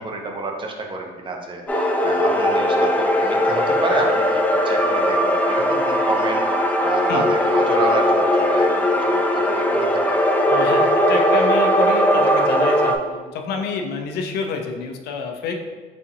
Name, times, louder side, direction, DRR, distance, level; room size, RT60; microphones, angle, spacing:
voice 1, 0.0-6.5 6.8-10.0, right 2 dB, 30° right, 1 dB, 0.7 m, -29 dB
sound 1, 1.7-13.0, equal, 10° left, 0.4 m, -19 dB
voice 2, 10.5-15.6, left 4 dB, 75° left, 4 dB, 0.5 m, -28 dB
4.1 x 3.6 x 2.9 m, 1.4 s
cardioid pair, 110°, 17 cm